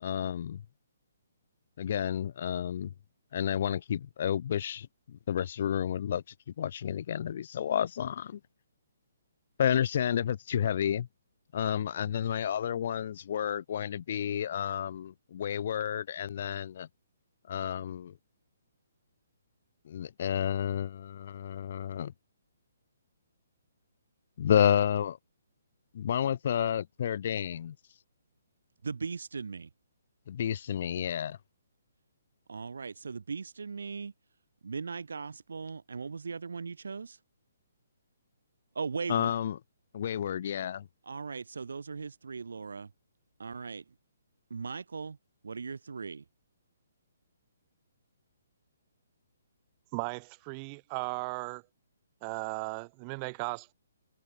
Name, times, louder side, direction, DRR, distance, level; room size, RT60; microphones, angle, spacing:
voice 1, 0.0-0.6 1.8-2.9 3.3-6.2 6.6-8.4 9.6-11.1 11.5-16.9 17.5-18.1 19.9-22.1 24.4-25.2 25.9-27.8 30.3-31.4 39.1-39.6 39.9-40.9, left 9 dB, 45° left, 0.4 m, -30 dB
voice 2, 28.8-29.7 32.5-34.1 34.6-37.2 38.8-39.3 41.0-42.9 43.4-43.9 44.5-45.2 45.4-46.2, right 5 dB, 85° right, 5.1 m, -38 dB
voice 3, 49.9-51.6 52.2-53.7, right 35 dB, 25° right, 2.0 m, -36 dB
hypercardioid pair, 165°, 0 cm